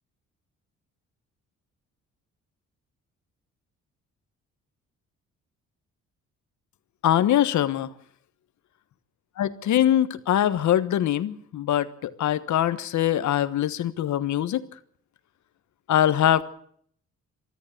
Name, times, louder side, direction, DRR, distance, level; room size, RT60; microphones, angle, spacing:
voice 1, 7.0-7.9 9.4-14.6 15.9-16.4, left 11 dB, 70° left, 13 dB, 1.3 m, -23 dB
23.5 x 14.0 x 8.6 m, 0.64 s
cardioid pair, 90°, 30 cm